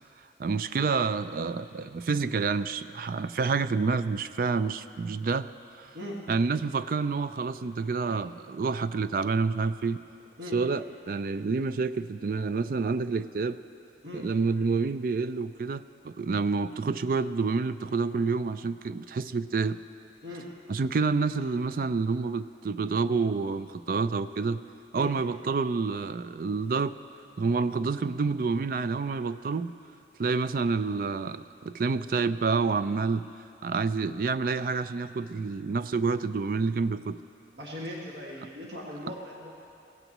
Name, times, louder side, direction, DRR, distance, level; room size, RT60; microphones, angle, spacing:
voice 1, 0.4-5.5 6.3-10.0 10.5-13.6 14.1-19.8 20.7-24.6 24.9-26.9 27.4-29.7 30.2-33.3 33.6-37.2, right 4 dB, 50° right, 13 dB, 0.4 m, -28 dB
voice 2, 37.5-39.5, left 1 dB, 90° right, -3 dB, 1.8 m, -39 dB
22.0 x 16.0 x 3.0 m, 2.6 s
head